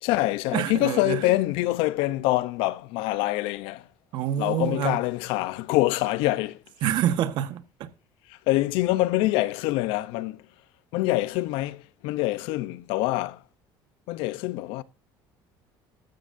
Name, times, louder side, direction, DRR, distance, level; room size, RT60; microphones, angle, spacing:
voice 1, 0.0-3.9 4.4-6.6 8.3-10.4 10.9-13.4 14.1-14.8, left 17 dB, 80° left, 0.8 m, -25 dB
voice 2, 0.5-1.2 4.1-5.0 6.8-7.9, right 11 dB, 60° right, 1.4 m, -27 dB
14.5 x 13.0 x 2.7 m
cardioid pair, 155°, 9 cm